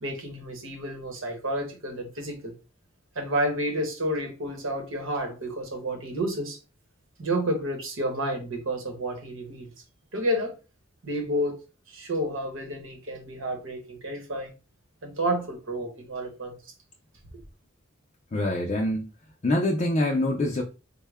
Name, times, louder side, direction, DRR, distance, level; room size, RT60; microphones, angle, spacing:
voice 1, 0.0-2.5 3.1-6.6 7.2-9.7 10.1-10.6 11.0-11.6 11.9-14.5 15.0-16.6, right 1 dB, 75° right, 1.1 m, -30 dB
voice 2, 18.3-19.1 19.4-20.6, left 1 dB, 35° left, 0.4 m, -25 dB
3.6 x 2.2 x 3.4 m
head